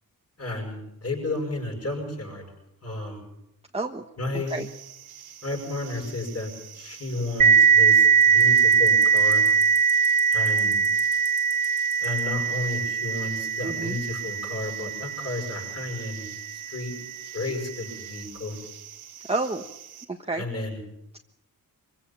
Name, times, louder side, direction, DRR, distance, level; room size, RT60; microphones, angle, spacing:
voice 1, 0.4-2.4 2.8-3.2 4.2-4.6 5.4-6.5 6.8-9.4 10.3-10.8 12.0-16.3 16.5-16.9 17.3-18.6 20.4-20.8, left 2 dB, 40° left, 0 dB, 7.5 m, -32 dB
voice 2, 3.7-4.0 4.5-4.6 13.6-14.0 19.3-19.6 20.1-20.4, right 3 dB, 15° right, 3 dB, 1.3 m, -29 dB
sound 1, 4.5-20.0, right 9 dB, 85° right, 2.8 m, -44 dB
sound 2, 7.4-16.6, right 6 dB, 55° right, 1.4 m, -21 dB
24.0 x 16.0 x 7.4 m, 0.84 s
cardioid pair, 65°, 37 cm